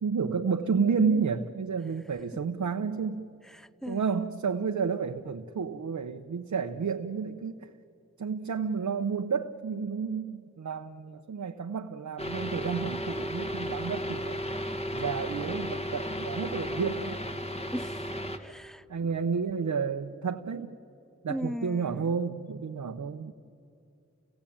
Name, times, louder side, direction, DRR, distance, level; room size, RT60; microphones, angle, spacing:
voice 1, 0.0-3.3 3.9-7.7 8.2-14.4 14.9-17.2 18.9-20.8 21.2-23.3, right 5 dB, 80° right, 0.9 m, -31 dB
voice 2, 3.5-4.1 17.7-18.1 18.4-18.8 21.3-22.1, equal, ahead, 0.6 m, -38 dB
sound 1, 12.2-18.4, equal, 20° left, 2.1 m, -34 dB
29.5 x 18.0 x 8.7 m
cardioid pair, 45°, 29 cm